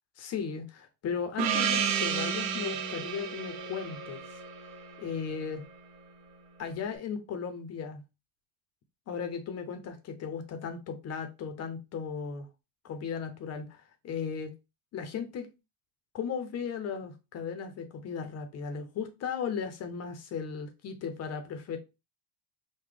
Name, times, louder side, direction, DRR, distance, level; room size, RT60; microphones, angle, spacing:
voice 1, 0.2-4.2 5.0-5.6 6.6-8.0 9.1-12.5 12.8-14.5 14.9-15.5 16.1-21.8, left 6 dB, 30° left, 0.6 m, -36 dB
Gong, 1.4-5.7, right 7 dB, 65° right, 0.9 m, -32 dB
3.9 x 2.1 x 3.2 m
cardioid pair, 145°, 49 cm